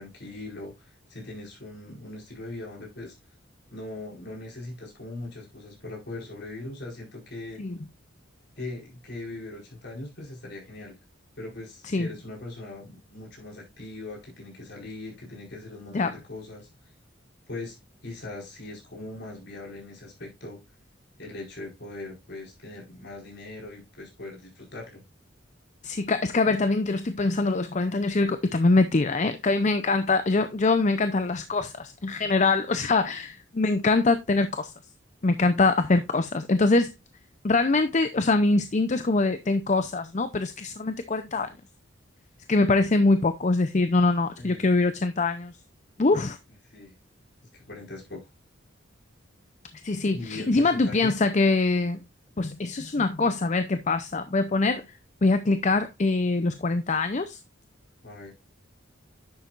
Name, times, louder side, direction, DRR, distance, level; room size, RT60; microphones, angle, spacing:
voice 1, 0.0-3.1 3.7-7.6 8.6-10.9 11.4-16.7 17.5-17.8 18.0-20.6 21.2-25.0 44.4-44.7 46.6-46.9 47.5-48.2 50.1-51.1 58.0-58.3, left 2 dB, 60° left, 4.8 m, -40 dB
voice 2, 25.8-34.7 35.2-36.9 37.4-41.5 42.5-45.5 46.0-46.4 49.8-52.0 52.4-54.8 55.2-57.4, left 3 dB, 35° left, 0.6 m, -23 dB
10.5 x 7.4 x 2.5 m
head